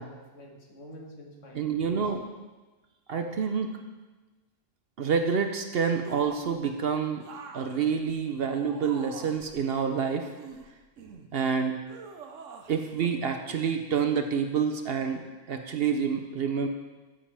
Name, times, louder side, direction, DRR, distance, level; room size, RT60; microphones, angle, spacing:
voice 1, 0.0-2.0, equal, 75° left, -1 dB, 2.0 m, -48 dB
voice 2, 1.5-2.3 3.1-3.7 5.0-7.2 7.5-10.3 11.3-11.8 12.7-16.7, right 6 dB, 55° right, 6 dB, 0.9 m, -28 dB
sound 1, 6.0-6.6 7.2-9.5 10.2-11.3 11.9-12.7 13.0-13.2, right 5 dB, 75° right, 1.2 m, -45 dB
13.5 x 7.6 x 3.4 m, 1.2 s
omnidirectional pair, 1.3 m